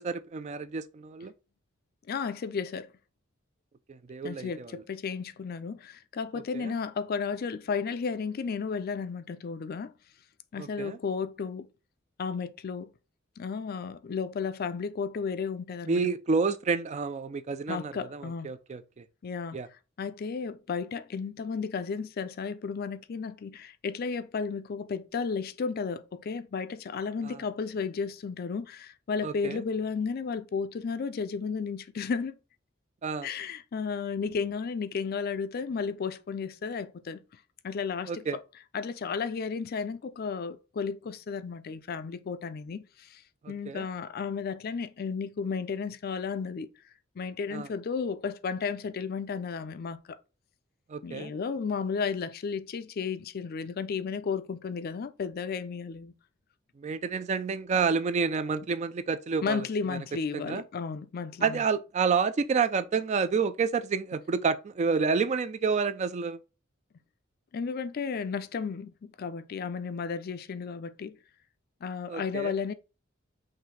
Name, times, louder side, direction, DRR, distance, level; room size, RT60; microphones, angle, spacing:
voice 1, 0.0-1.3 3.9-4.7 6.5-6.7 10.6-11.0 15.9-18.8 19.5-19.7 27.2-27.4 29.2-29.6 33.0-33.3 38.1-38.4 43.4-43.8 47.5-47.7 50.9-51.3 56.8-59.6 59.9-60.0 60.4-60.6 61.4-66.4 72.1-72.5, right 5 dB, 35° right, 0.3 m, -29 dB
voice 2, 2.1-2.9 4.2-9.9 10.5-11.7 12.2-12.9 13.4-16.0 17.7-18.5 19.2-19.6 20.0-32.4 33.2-37.2 37.6-38.4 38.7-43.2 43.5-46.7 47.2-50.2 51.0-56.1 59.4-61.6 67.5-71.2 71.8-72.7, left 5 dB, 50° left, 0.4 m, -33 dB
5.7 x 2.6 x 3.2 m
head